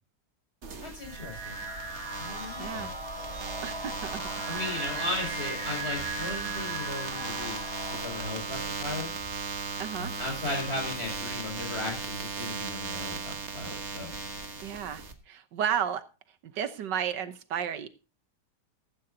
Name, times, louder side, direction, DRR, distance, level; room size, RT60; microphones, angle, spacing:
sound 1, 0.6-15.1, right 4 dB, 40° right, 1.6 m, -37 dB
voice 1, 0.8-1.6 2.2-2.9 4.5-7.6 8.0-9.1 10.0-14.1, left 2 dB, 35° left, 1 dB, 6.2 m, -36 dB
sound 2, 1.0-8.6, right 2 dB, 20° right, 5.0 m, -39 dB
sound 3, 1.5-11.0, right 2 dB, 5° left, 2.5 m, -45 dB
voice 2, 2.6-2.9 3.6-4.6 9.8-10.1 14.6-16.0 16.4-17.9, right 8 dB, 80° right, 12 dB, 1.6 m, -33 dB
14.5 x 13.5 x 2.8 m, 0.32 s
omnidirectional pair, 1.9 m